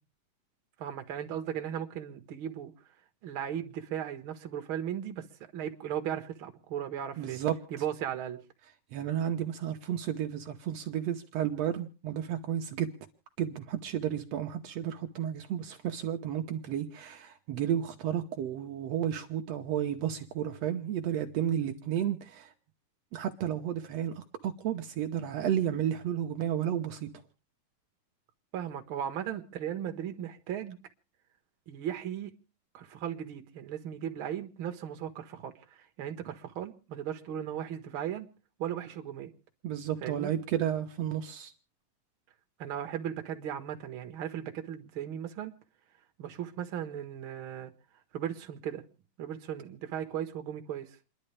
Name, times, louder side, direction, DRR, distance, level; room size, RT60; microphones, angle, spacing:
voice 1, 0.8-2.7 3.2-5.3 5.5-7.4 7.7-8.4 28.5-30.8 31.7-32.3 32.7-38.3 38.6-39.3 40.0-40.3 42.6-45.5 46.2-47.7 48.1-48.8 49.2-51.0, right 10 dB, 60° right, 1.4 m, -37 dB
voice 2, 7.2-7.5 8.9-12.9 13.4-22.5 23.1-27.1 39.6-41.5, right 10 dB, 85° right, 1.4 m, -32 dB
29.0 x 11.5 x 3.3 m
omnidirectional pair, 4.2 m